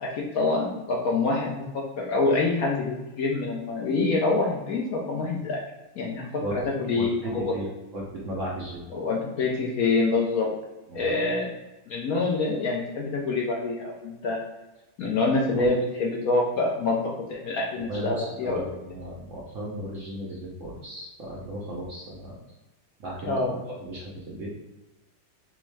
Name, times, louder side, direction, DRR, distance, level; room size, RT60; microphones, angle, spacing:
voice 1, 0.0-5.6 6.0-7.5 8.9-10.5 10.9-11.5 11.9-14.4 15.0-18.8 23.3-23.6, left 3 dB, 65° left, -2 dB, 1.0 m, -26 dB
voice 2, 6.9-7.7 7.9-8.9 10.9-11.1 15.6-15.7 17.7-22.4 23.0-23.4 23.8-24.5, right 1 dB, 60° right, -4 dB, 0.9 m, -35 dB
3.5 x 3.1 x 3.2 m, 1.1 s
omnidirectional pair, 1.9 m